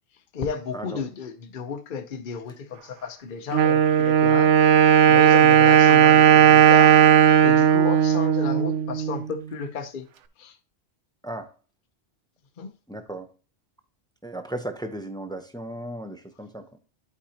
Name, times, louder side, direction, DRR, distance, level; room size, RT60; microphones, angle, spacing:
voice 1, 0.3-4.5 5.1-7.0 7.4-10.1 10.4-10.6 12.6-12.7, left 6 dB, 50° left, 0.8 m, -33 dB
Wind instrument woodwind instrument, 3.5-9.2, right 9 dB, 80° right, 1.0 m, -16 dB
voice 2, 12.9-13.3 14.2-16.6, right 1 dB, 5° left, 0.7 m, -35 dB
11.5 x 4.8 x 2.9 m
omnidirectional pair, 1.2 m